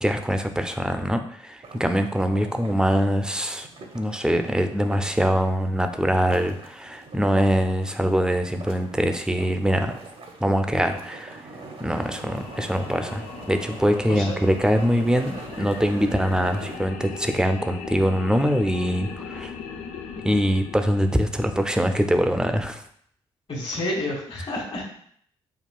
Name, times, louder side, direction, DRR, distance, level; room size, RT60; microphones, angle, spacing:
voice 1, 0.0-3.7 3.9-10.0 10.4-11.4 11.8-19.5 20.2-22.8, equal, 5° right, 6 dB, 0.5 m, -23 dB
sound 1, 1.6-16.8, right 3 dB, 50° right, 0.7 m, -43 dB
sound 2, 11.8-22.1, left 6 dB, 80° left, 0.4 m, -39 dB
voice 2, 23.5-24.8, left 1 dB, 50° left, -1 dB, 1.5 m, -29 dB
5.5 x 2.3 x 2.3 m, 0.64 s
hypercardioid pair, 45°, 12 cm